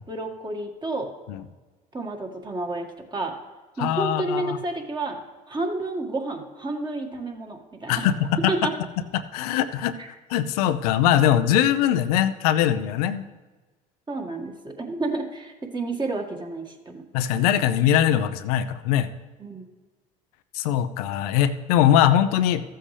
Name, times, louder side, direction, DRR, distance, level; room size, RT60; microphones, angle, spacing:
voice 1, 0.1-1.1 1.9-3.3 3.8-5.2 5.5-8.1 8.5-8.7 10.0-10.1 14.1-17.0 19.4-19.7, right 2 dB, 25° right, 2 dB, 1.9 m, -30 dB
voice 2, 3.8-4.6 7.9-8.5 9.1-9.9 10.3-13.2 17.1-19.1 20.5-22.6, left 10 dB, 90° left, 10 dB, 0.6 m, -21 dB
14.0 x 7.7 x 3.3 m, 1.2 s
supercardioid pair, 80°, 19 cm